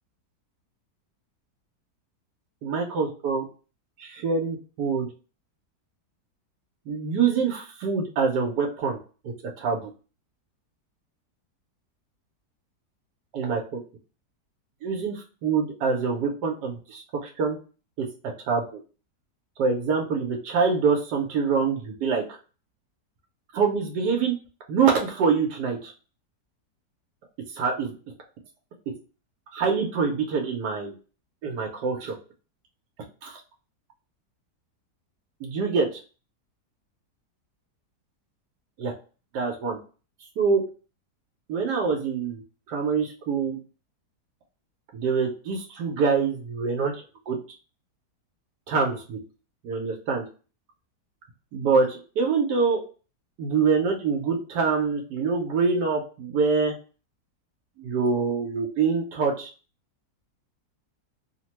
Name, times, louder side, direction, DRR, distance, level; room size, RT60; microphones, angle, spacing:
voice 1, 2.6-3.4 4.0-5.1 6.9-9.0 9.2-9.9 13.3-13.8 14.8-17.6 18.0-18.1 18.4-18.8 19.6-22.4 23.5-24.3 24.7-25.9 27.5-28.0 29.5-30.9 31.4-32.2 33.2-33.4 35.4-36.0 38.8-38.9 39.3-39.8 40.4-40.6 41.5-42.4 42.7-43.6 44.9-47.4 48.7-49.2 49.6-50.2 51.5-52.8 53.4-56.8 57.8-59.5, right 5 dB, 80° right, 1 dB, 1.3 m, -25 dB
3.3 x 2.1 x 2.9 m, 0.35 s
omnidirectional pair, 1.8 m